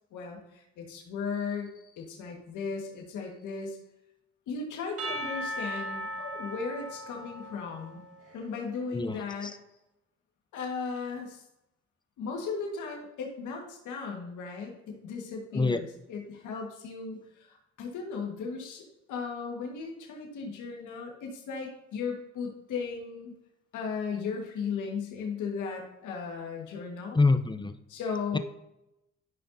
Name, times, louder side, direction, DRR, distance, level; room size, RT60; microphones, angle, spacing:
voice 1, 0.1-3.8 4.5-8.0 8.3-9.5 10.5-11.4 12.2-23.3 23.7-27.2 27.9-28.4, left 5 dB, 80° left, 0 dB, 1.7 m, -36 dB
Percussion / Church bell, 5.0-8.6, right 1 dB, 50° right, 1.6 m, -38 dB
voice 2, 8.9-9.5 15.5-15.8 27.1-27.7 28.3-28.4, left 3 dB, 15° left, 9 dB, 0.7 m, -26 dB
12.5 x 5.5 x 2.8 m, 0.86 s
supercardioid pair, 70°, 30 cm